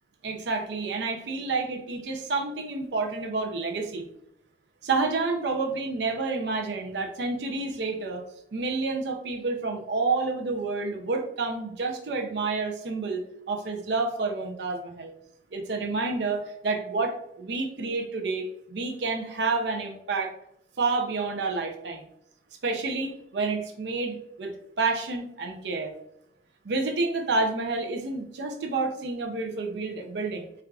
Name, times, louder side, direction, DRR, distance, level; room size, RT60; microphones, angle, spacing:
voice 1, 0.2-4.1 4.8-8.2 8.5-15.1 15.5-20.3 20.8-22.0 22.6-25.9 26.6-30.5, right 3 dB, 70° right, 4 dB, 0.5 m, -29 dB
4.3 x 2.4 x 2.3 m, 0.78 s
head